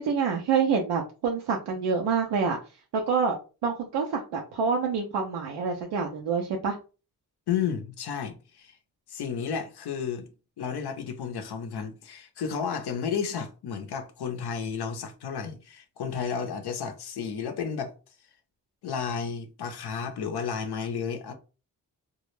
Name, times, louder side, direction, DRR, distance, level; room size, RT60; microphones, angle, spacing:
voice 1, 0.0-2.6 3.1-3.4 3.6-6.8, right 5 dB, 85° right, 0.5 m, -27 dB
voice 2, 7.5-8.7 9.1-10.3 10.6-17.9 18.8-21.3, left 6 dB, 70° left, 0.6 m, -32 dB
2.2 x 2.0 x 3.0 m
supercardioid pair, 40°, 41 cm